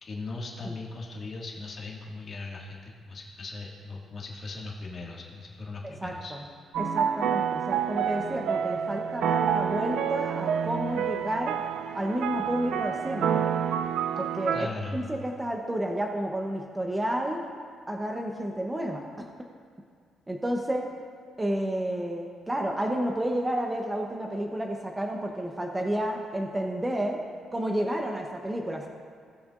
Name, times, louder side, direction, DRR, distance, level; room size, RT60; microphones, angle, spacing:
voice 1, 0.0-6.3 14.5-15.0, left 3 dB, 45° left, -3 dB, 1.9 m, -38 dB
voice 2, 5.8-6.4 6.8-11.6 11.9-13.5 14.2-17.5 17.9-19.3 20.3-20.9 21.4-27.2 27.5-28.9, right 1 dB, 15° right, 1 dB, 0.9 m, -31 dB
sound 1, 6.7-14.7, right 8 dB, 80° right, 0.4 m, -28 dB
18.0 x 6.9 x 2.5 m, 2.2 s
cardioid pair, 90°, 0 cm